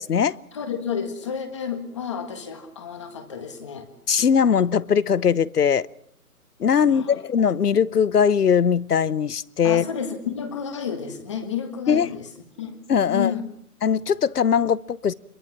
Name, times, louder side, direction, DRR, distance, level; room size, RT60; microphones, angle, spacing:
voice 1, 0.0-0.4 4.1-5.9 6.6-9.8 11.9-12.1 12.9-13.3 13.8-15.1, left 7 dB, 80° left, 1.0 m, -20 dB
voice 2, 0.5-3.9 6.8-7.1 9.6-12.3 12.6-12.8 13.1-13.4, left 7 dB, 20° left, 1.6 m, -31 dB
26.0 x 22.5 x 6.0 m
hypercardioid pair, 170°, 46 cm